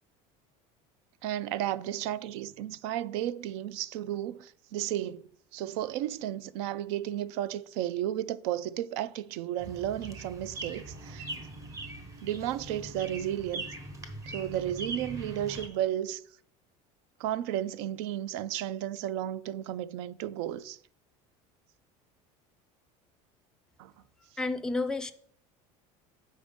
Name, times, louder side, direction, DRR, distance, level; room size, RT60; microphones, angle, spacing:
voice 1, 1.2-11.3 12.2-13.7 14.3-16.2 17.2-20.8 23.8-23.9, right 12 dB, 80° right, 0.4 m, -33 dB
sound 1, 9.6-15.7, right 2 dB, 20° right, 1.0 m, -41 dB
voice 2, 24.4-25.1, left 3 dB, 5° left, 0.4 m, -30 dB
7.7 x 5.3 x 5.1 m
cardioid pair, 165°, 14 cm